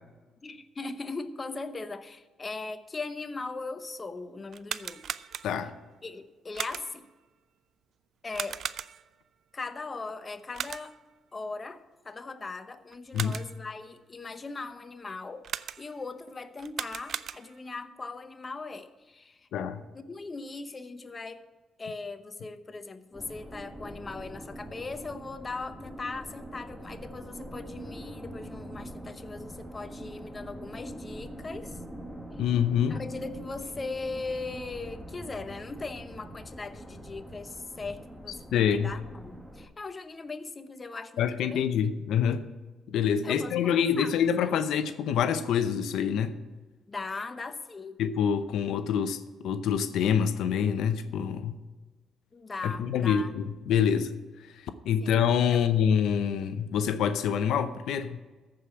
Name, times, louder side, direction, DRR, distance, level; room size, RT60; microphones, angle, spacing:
voice 1, 0.4-5.1 6.0-7.1 8.2-8.6 9.5-11.0 11.3-15.5 15.8-19.5 19.9-21.4 21.8-31.8 32.9-41.6 43.2-44.1 44.4-44.5 46.9-48.0 52.3-53.4 55.0-55.2 55.5-55.7, left 3 dB, 30° left, 0.9 m, -39 dB
sound 1, 4.5-5.8 6.5-7.1 8.3-9.2 10.5-11.1 12.9-13.7 15.4-16.1 16.6-17.7, right 8 dB, 60° right, 0.4 m, -38 dB
voice 2, 19.5-19.8 32.4-33.0 38.5-38.9 41.2-42.5 42.9-46.4 48.0-51.6 52.6-54.1 54.6-58.2, left 8 dB, 80° left, 0.7 m, -26 dB
sound 2, 23.1-39.7, equal, ahead, 1.6 m, -43 dB
14.5 x 5.0 x 8.6 m
cardioid pair, 90°, 0 cm